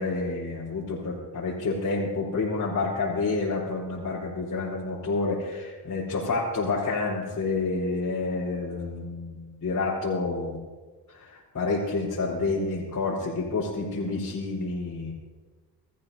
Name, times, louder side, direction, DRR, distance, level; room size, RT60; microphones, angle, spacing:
voice 1, 0.0-10.6 11.1-15.1, left 3 dB, 45° left, -7 dB, 4.4 m, -29 dB
23.0 x 14.0 x 2.8 m, 1.4 s
cardioid pair, 85°, 40 cm